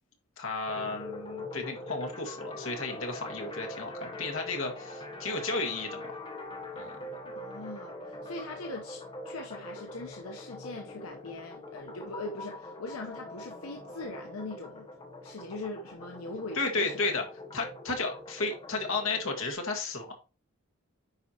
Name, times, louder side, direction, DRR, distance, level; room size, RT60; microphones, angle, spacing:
voice 1, 0.4-6.1 6.7-7.0 7.2-7.3 16.5-17.2 17.5-20.1, left 3 dB, 65° left, 1.6 m, -33 dB
sound 1, 0.7-19.5, left 2 dB, 25° left, 0.9 m, -43 dB
voice 2, 7.3-14.9 15.2-16.9, left 2 dB, 85° left, 0.8 m, -41 dB
9.9 x 4.3 x 2.9 m
head